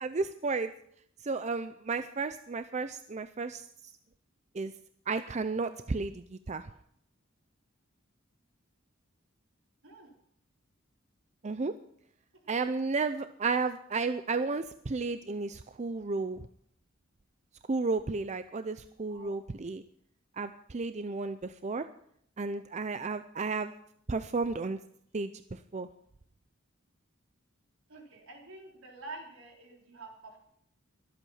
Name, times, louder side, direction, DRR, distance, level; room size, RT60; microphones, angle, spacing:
voice 1, 0.0-0.7 1.2-3.6 4.5-4.7 5.1-6.6 11.4-11.7 12.5-16.4 17.7-19.8 20.4-21.9 22.4-23.7 24.1-24.8 25.1-25.9, right 4 dB, 35° right, 10 dB, 0.5 m, -33 dB
voice 2, 12.5-13.2 19.1-19.3 27.9-30.4, right 2 dB, 75° right, 1 dB, 3.9 m, -48 dB
22.5 x 8.3 x 5.7 m, 0.69 s
head